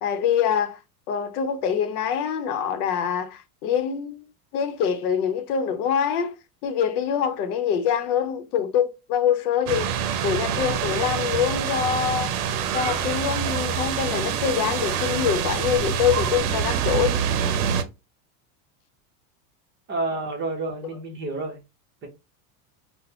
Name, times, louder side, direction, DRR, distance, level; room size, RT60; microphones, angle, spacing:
voice 1, 0.0-0.8 1.1-4.2 4.5-6.3 6.6-9.9 10.2-12.4 12.7-17.2, left 8 dB, 80° left, 0.7 m, -25 dB
sound 1, 9.7-17.8, right 8 dB, 80° right, 0.7 m, -26 dB
voice 2, 19.9-21.6 22.0-22.1, right 3 dB, 25° right, 0.7 m, -29 dB
3.9 x 2.1 x 2.8 m
supercardioid pair, 150°, 45 cm